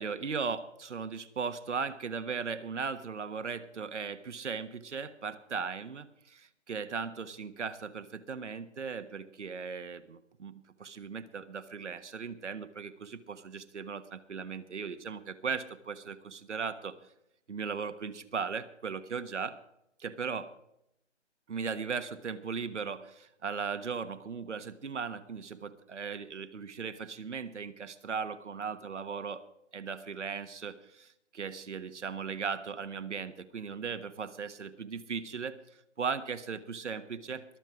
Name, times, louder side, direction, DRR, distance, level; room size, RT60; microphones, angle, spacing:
voice 1, 0.0-10.5 10.8-16.9 17.5-19.6 20.0-20.5 21.5-29.4 29.7-35.6 36.0-37.4, right 5 dB, 70° right, 11 dB, 1.4 m, -37 dB
22.5 x 7.7 x 4.9 m, 0.79 s
hypercardioid pair, 155°, 36 cm